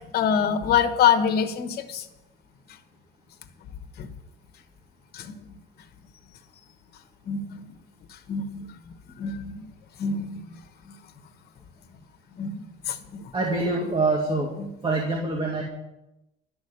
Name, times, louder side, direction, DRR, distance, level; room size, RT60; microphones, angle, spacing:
voice 1, 0.1-2.0 4.0-4.1 5.1-5.3 7.3-7.4 8.3-8.7 9.2-9.6 10.0-10.4 12.4-13.0, left 7 dB, 50° left, 3 dB, 1.3 m, -24 dB
voice 2, 13.3-14.5 14.8-15.6, right 3 dB, 25° right, 0 dB, 2.1 m, -25 dB
11.5 x 6.2 x 9.4 m, 0.93 s
cardioid pair, 120°, 20 cm